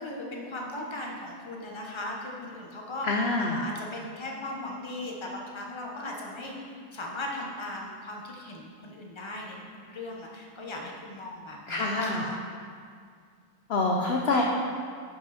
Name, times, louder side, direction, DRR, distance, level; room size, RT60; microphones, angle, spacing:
voice 1, 0.0-3.1 3.4-9.6 9.9-12.4, left 1 dB, 20° left, -1 dB, 0.8 m, -38 dB
voice 2, 3.1-3.6 11.7-12.2 13.7-14.4, left 3 dB, 60° left, 0 dB, 0.7 m, -26 dB
11.0 x 6.1 x 4.2 m, 2.1 s
omnidirectional pair, 1.9 m